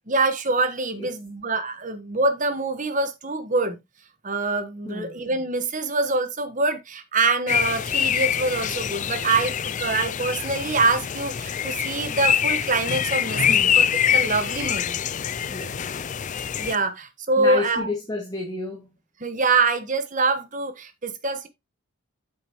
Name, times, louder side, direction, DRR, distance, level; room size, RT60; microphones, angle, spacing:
voice 1, 0.1-3.8 4.2-13.9 14.1-15.0 16.6-17.9 19.2-21.5, right 3 dB, 35° right, 1.4 m, -25 dB
sound 1, 7.5-16.8, left 9 dB, 35° left, 0.4 m, -25 dB
voice 2, 15.5-15.9 17.4-18.9, left 2 dB, 20° left, 2.0 m, -31 dB
8.8 x 7.2 x 3.1 m
head